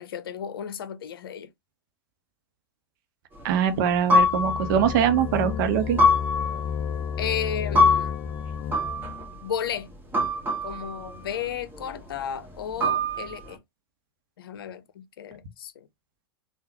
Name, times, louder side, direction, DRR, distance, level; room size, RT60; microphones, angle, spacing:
voice 1, 0.0-1.5 7.2-8.2 9.3-9.9 10.6-13.6 14.4-15.9, left 8 dB, 70° left, 0.6 m, -33 dB
sound 1, 3.4-5.6 6.0-9.4 10.1-11.4 11.7-12.0 12.5-12.6 12.8-13.5, left 2 dB, 15° right, 1.4 m, -24 dB
voice 2, 3.4-6.0, right 9 dB, 55° right, 0.9 m, -23 dB
sound 2, 4.2-9.3, left 7 dB, 30° left, 0.3 m, -32 dB
3.7 x 2.4 x 2.8 m
figure-of-eight pair, 95°, 13 cm